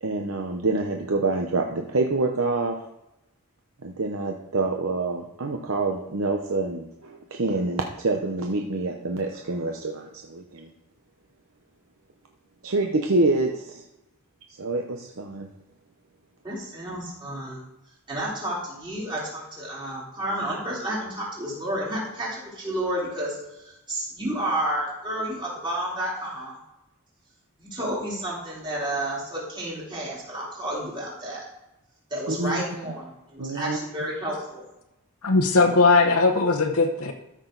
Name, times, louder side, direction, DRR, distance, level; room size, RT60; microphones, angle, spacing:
voice 1, 0.0-2.8 3.8-10.7 12.6-13.8 14.6-15.5 32.3-32.6 33.4-33.8, right 3 dB, 70° right, 2 dB, 0.8 m, -26 dB
voice 2, 16.4-17.7 18.1-23.4 23.6-26.5 27.6-31.4 32.1-34.7, right 1 dB, 20° right, -6 dB, 3.6 m, -31 dB
voice 3, 35.2-37.1, left 3 dB, 90° left, 3 dB, 1.0 m, -19 dB
13.0 x 6.2 x 3.9 m, 0.91 s
head